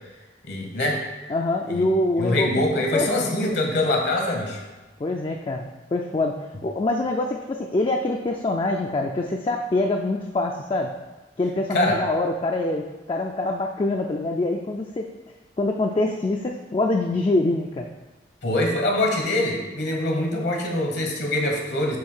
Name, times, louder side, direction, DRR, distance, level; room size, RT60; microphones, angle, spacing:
voice 1, 0.5-1.0 1.7-1.9 2.2-4.6 11.7-12.0 18.4-22.0, left 1 dB, 65° left, 1 dB, 1.0 m, -24 dB
voice 2, 1.3-2.6 2.9-3.4 5.0-10.9 11.4-15.1 15.6-17.9, left 2 dB, 30° left, 2 dB, 0.3 m, -25 dB
7.6 x 2.7 x 5.5 m, 1.2 s
head